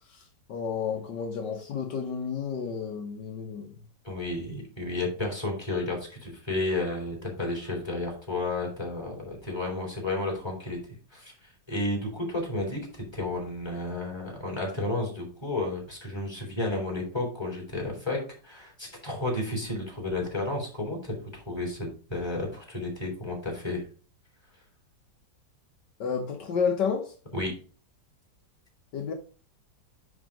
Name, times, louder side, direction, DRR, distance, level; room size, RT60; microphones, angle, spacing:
voice 1, 0.1-3.7 26.0-27.1 28.9-29.1, left 6 dB, 75° left, 1.7 m, -31 dB
voice 2, 4.0-10.8 11.1-11.3 11.7-23.8 27.3-27.5, left 2 dB, 15° left, 3.6 m, -32 dB
10.0 x 3.8 x 5.0 m
omnidirectional pair, 1.9 m